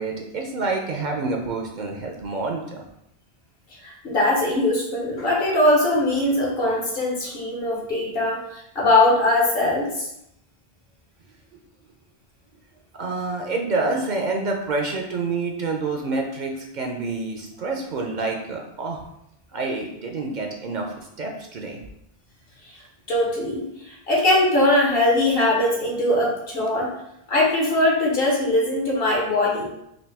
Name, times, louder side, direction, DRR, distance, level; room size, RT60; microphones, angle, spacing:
voice 1, 0.0-2.8 13.0-19.0 19.5-21.8, right 3 dB, 55° right, 1 dB, 0.6 m, -28 dB
voice 2, 3.8-10.1 22.7-22.8 23.1-26.9 27.3-29.7, left 1 dB, 65° left, -3 dB, 1.3 m, -21 dB
4.0 x 2.6 x 3.3 m, 0.80 s
omnidirectional pair, 1.0 m